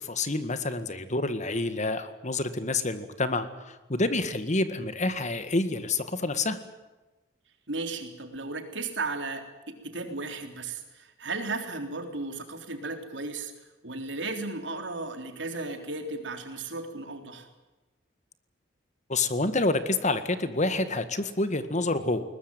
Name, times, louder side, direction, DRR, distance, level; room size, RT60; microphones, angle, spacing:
voice 1, 0.0-6.6 19.1-22.2, left 2 dB, 40° left, 11 dB, 1.9 m, -28 dB
voice 2, 7.7-13.5 13.8-17.5, right 3 dB, 75° right, 6 dB, 3.7 m, -35 dB
22.0 x 20.0 x 9.1 m, 1.1 s
head